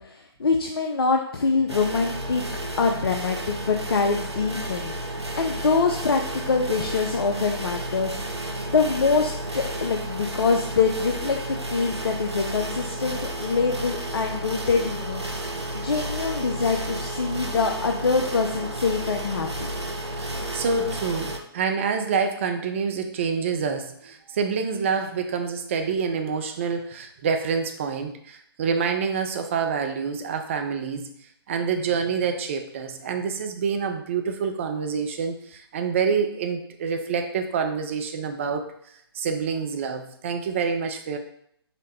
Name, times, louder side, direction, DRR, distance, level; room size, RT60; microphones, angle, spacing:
voice 1, 0.0-2.4 2.8-15.2 15.5-19.7, left 4 dB, 65° left, 3 dB, 0.4 m, -25 dB
sound 1, 1.7-21.4, right 1 dB, 85° right, 0.6 m, -32 dB
voice 2, 20.5-31.1 31.5-38.7 39.1-41.2, right 5 dB, 30° right, 5 dB, 0.4 m, -27 dB
4.1 x 2.0 x 4.0 m, 0.70 s
figure-of-eight pair, 135°, 14 cm